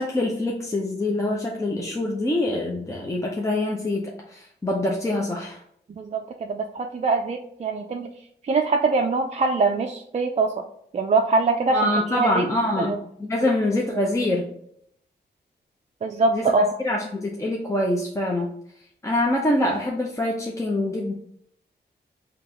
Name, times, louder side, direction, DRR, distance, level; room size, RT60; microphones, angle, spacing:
voice 1, 0.0-5.6 11.7-14.4 16.3-18.5 19.0-21.1, left 1 dB, 15° left, -1 dB, 0.6 m, -25 dB
voice 2, 5.9-8.1 8.4-10.5 10.9-11.8 12.1-12.4 12.8-13.0 16.0-16.7, right 3 dB, 40° right, 2 dB, 0.4 m, -23 dB
3.9 x 2.9 x 3.3 m, 0.69 s
wide cardioid pair, 100°, 18 cm